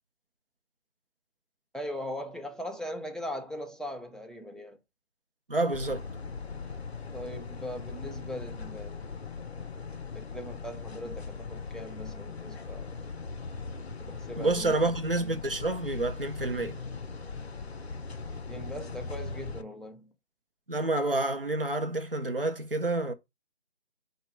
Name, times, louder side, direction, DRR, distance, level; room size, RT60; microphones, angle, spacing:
voice 1, 1.7-4.8 7.1-9.1 10.1-13.1 14.0-14.8 18.5-20.1, equal, ahead, 0.3 m, -40 dB
voice 2, 5.5-6.1 14.4-16.8 20.7-23.1, right 2 dB, 50° right, 0.6 m, -28 dB
sound 1, 5.7-19.6, left 4 dB, 60° left, 0.5 m, -40 dB
4.5 x 2.1 x 3.2 m
figure-of-eight pair, 175°, 36 cm